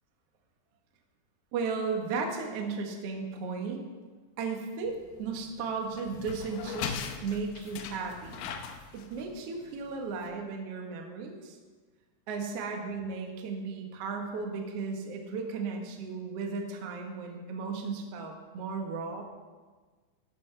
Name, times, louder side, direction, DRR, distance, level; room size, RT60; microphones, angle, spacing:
voice 1, 1.5-3.8 4.4-8.4 8.9-11.6 12.3-19.2, right 4 dB, 85° right, 2 dB, 1.3 m, -35 dB
sound 1, 4.9-10.3, left 7 dB, 85° left, 2.0 m, -40 dB
12.5 x 11.5 x 3.4 m, 1.4 s
omnidirectional pair, 4.9 m